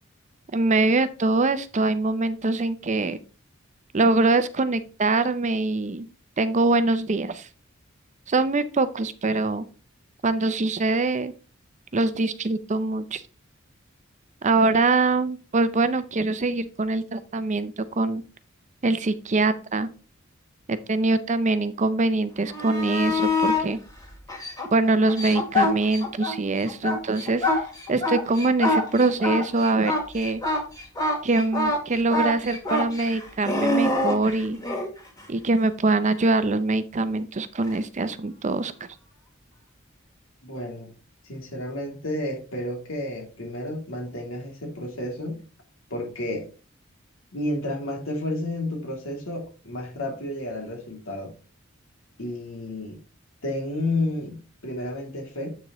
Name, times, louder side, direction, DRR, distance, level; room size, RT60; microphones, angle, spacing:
voice 1, 0.5-3.2 3.9-6.1 6.4-7.5 8.3-9.6 10.2-11.3 11.9-13.2 14.4-18.2 18.8-19.9 20.7-23.8 24.7-27.5 27.9-30.4 31.2-34.6 35.3-38.7, right 3 dB, 35° right, 12 dB, 0.6 m, -23 dB
sound 1, 22.4-23.7 24.3-26.3 26.7-34.9 37.6-37.7, left 2 dB, 20° left, 2.2 m, -25 dB
voice 2, 40.4-40.9 41.2-45.4 45.9-46.5 47.3-51.3 52.2-53.0 53.4-55.5, left 1 dB, 85° left, 0 dB, 2.8 m, -31 dB
8.3 x 6.4 x 3.1 m, 0.35 s
head